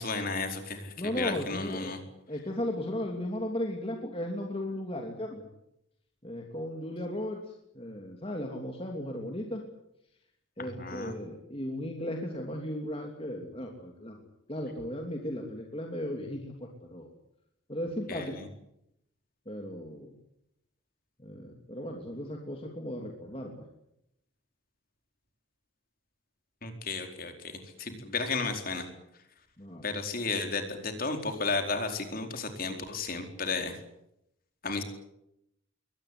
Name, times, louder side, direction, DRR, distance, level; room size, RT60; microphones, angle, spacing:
voice 1, 0.0-2.0 10.8-11.1 18.1-18.2 26.6-27.3 27.8-28.9 29.8-33.8 34.6-34.8, left 3 dB, 45° left, 5 dB, 4.5 m, -33 dB
voice 2, 1.0-1.9 2.3-5.4 6.2-9.6 10.6-14.2 14.5-17.1 17.7-18.4 19.5-20.1 21.2-23.6 29.6-29.9, left 1 dB, 25° left, 1 dB, 2.9 m, -36 dB
22.5 x 19.0 x 10.0 m, 0.80 s
head